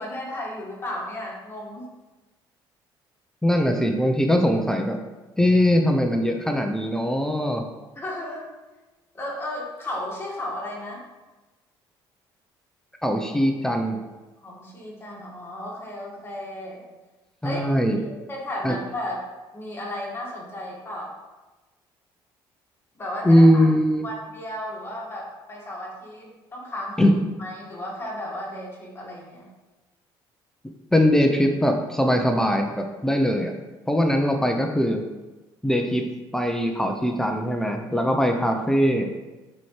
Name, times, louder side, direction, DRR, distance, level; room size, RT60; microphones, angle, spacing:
voice 1, 0.0-1.9 8.0-8.5 9.1-11.0 14.4-16.8 17.4-17.6 18.0-19.3 19.5-21.2 23.0-23.7 24.0-27.1 27.4-29.5, left 1 dB, 25° left, -3 dB, 1.8 m, -34 dB
voice 2, 3.4-5.0 5.4-7.7 13.0-14.0 17.4-18.0 18.6-18.8 23.2-24.0 27.0-27.1 30.9-33.5 33.9-35.0 35.6-36.0 36.3-39.1, equal, 5° left, 3 dB, 0.7 m, -21 dB
9.1 x 4.3 x 3.3 m, 1.2 s
cardioid pair, 105°, 9 cm